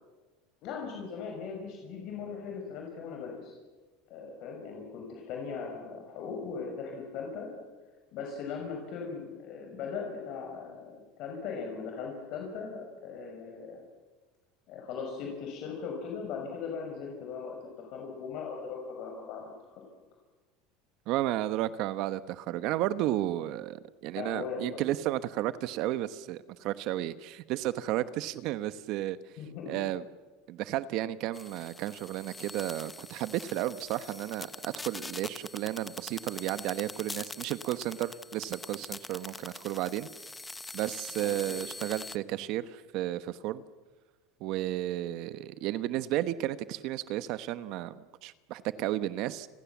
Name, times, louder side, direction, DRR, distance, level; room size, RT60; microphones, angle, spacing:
voice 1, 0.6-3.5 4.1-7.5 8.1-13.8 14.7-19.8 24.2-24.8 29.4-29.7 41.2-41.6, left 5 dB, 55° left, 1 dB, 6.1 m, -39 dB
voice 2, 21.1-29.2 29.7-30.0 30.5-40.1 40.7-43.6 44.4-49.5, right 14 dB, 55° right, 13 dB, 1.1 m, -33 dB
sound 1, 31.3-42.2, left 3 dB, 10° left, 0.9 m, -44 dB
30.0 x 26.0 x 7.3 m, 1.3 s
supercardioid pair, 145°, 0 cm